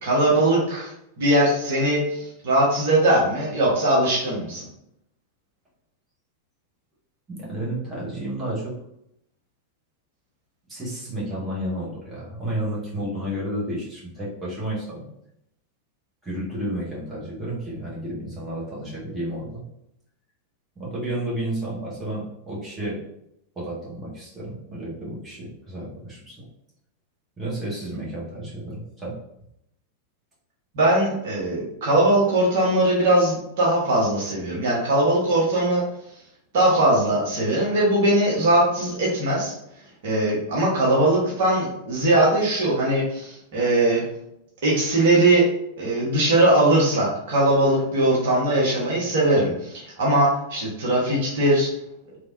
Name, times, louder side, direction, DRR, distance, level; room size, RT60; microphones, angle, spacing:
voice 1, 0.0-4.6 30.7-35.8 36.5-39.5 40.0-44.0 44.6-45.4 45.8-51.7, right 1 dB, 55° right, -6 dB, 1.2 m, -20 dB
voice 2, 7.3-8.7 10.7-15.0 16.2-19.6 20.7-23.0 23.5-26.4 27.4-29.1, right 1 dB, 15° right, -7 dB, 1.5 m, -31 dB
3.3 x 3.0 x 2.7 m, 0.78 s
figure-of-eight pair, 90°, 0 cm